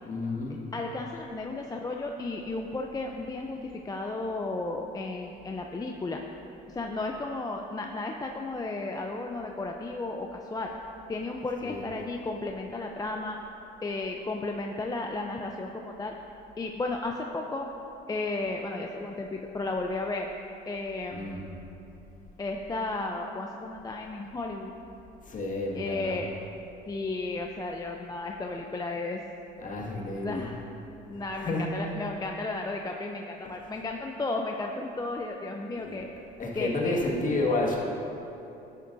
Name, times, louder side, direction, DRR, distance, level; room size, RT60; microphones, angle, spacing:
voice 1, 0.0-0.6 11.6-11.8 21.1-21.4 25.2-26.2 29.6-30.5 31.1-31.7 32.0-32.2 33.4-33.6 35.8-37.8, left 2 dB, 45° left, -3 dB, 1.9 m, -31 dB
voice 2, 0.7-6.2 6.7-10.7 11.1-13.4 13.8-16.1 16.6-17.7 18.1-20.3 20.7-21.3 22.4-24.7 25.7-26.3 26.9-29.2 30.2-30.6 31.1-36.1 36.6-37.0, left 2 dB, 20° left, 2 dB, 0.6 m, -34 dB
11.5 x 9.3 x 2.7 m, 2.9 s
supercardioid pair, 80°, 20 cm